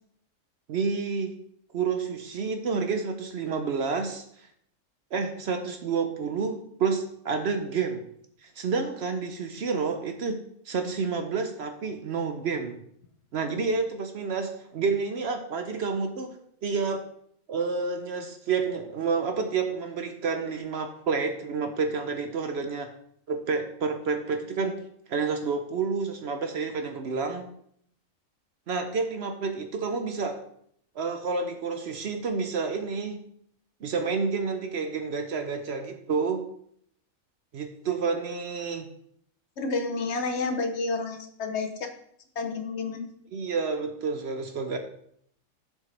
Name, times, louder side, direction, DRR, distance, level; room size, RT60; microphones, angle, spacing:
voice 1, 0.7-1.3 1.7-4.5 5.1-8.0 8.4-10.4 10.7-12.8 13.3-16.4 16.6-17.0 17.5-22.9 23.3-24.8 25.1-27.5 28.7-30.4 31.0-33.2 33.8-36.4 37.5-38.9 43.3-44.8, right 5 dB, 60° right, 6 dB, 0.8 m, -29 dB
voice 2, 39.6-41.9 42.4-43.1, left 3 dB, 60° left, 6 dB, 1.0 m, -30 dB
7.3 x 6.4 x 3.3 m, 0.68 s
omnidirectional pair, 1.4 m